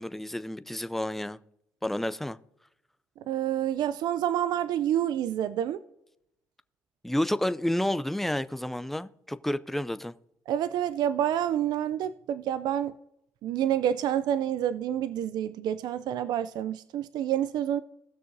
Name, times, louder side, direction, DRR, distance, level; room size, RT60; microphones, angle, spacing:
voice 1, 0.0-1.4 1.8-2.4 7.0-10.1, left 1 dB, 5° left, 0.5 m, -30 dB
voice 2, 3.3-5.8 10.5-12.9 13.4-17.8, right 10 dB, 70° right, 0.4 m, -28 dB
17.5 x 6.4 x 2.7 m
supercardioid pair, 70°, 7 cm